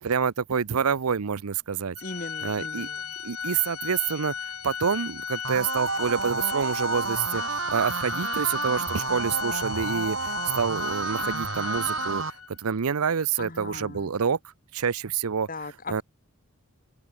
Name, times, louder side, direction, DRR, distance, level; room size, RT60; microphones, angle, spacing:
voice 1, 0.0-2.0 2.4-2.9 3.2-4.3 4.6-12.2 12.6-14.4 14.7-15.5 15.9-16.0, right 6 dB, 85° right, 0.6 m, -27 dB
Organ, 2.0-12.6, left 7 dB, 85° left, 4.2 m, -36 dB
voice 2, 2.0-3.1 13.4-14.1 15.5-16.0, left 3 dB, 40° left, 2.1 m, -39 dB
sound 1, 5.4-12.3, right 4 dB, 60° right, 3.1 m, -30 dB
head